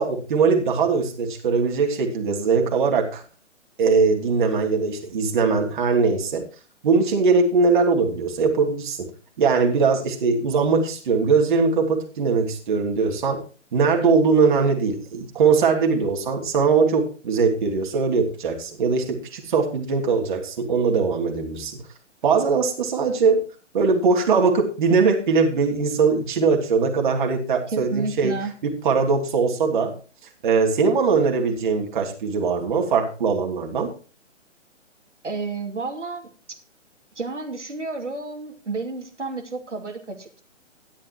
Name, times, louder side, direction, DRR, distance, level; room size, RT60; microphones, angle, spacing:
voice 1, 0.0-3.2 3.8-6.4 6.8-9.1 9.4-13.4 13.7-21.8 22.2-23.4 23.7-28.3 28.6-29.9 30.4-33.9, right 4 dB, 40° right, 2 dB, 3.0 m, -21 dB
voice 2, 27.7-28.5 35.2-36.3 37.1-40.4, right 3 dB, 70° right, 2 dB, 2.8 m, -31 dB
14.0 x 11.5 x 3.0 m, 0.36 s
figure-of-eight pair, 130°, 37 cm